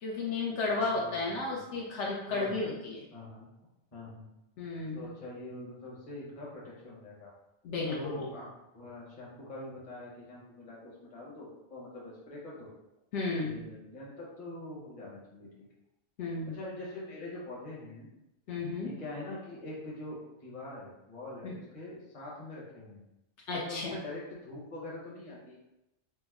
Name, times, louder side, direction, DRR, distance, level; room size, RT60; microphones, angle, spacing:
voice 1, 0.0-3.0 4.6-5.1 7.6-8.2 13.1-13.7 16.2-16.6 18.5-18.9 21.4-21.5 23.5-24.0, left 3 dB, 75° left, -3 dB, 0.9 m, -33 dB
voice 2, 0.8-1.6 2.3-2.7 3.1-3.5 3.9-4.3 4.9-7.3 7.9-8.5 8.7-12.7 13.4-15.6 16.5-18.1 18.8-23.0 23.5-25.6, left 2 dB, 30° left, -5 dB, 0.9 m, -44 dB
3.2 x 2.0 x 3.5 m, 0.90 s
omnidirectional pair, 1.3 m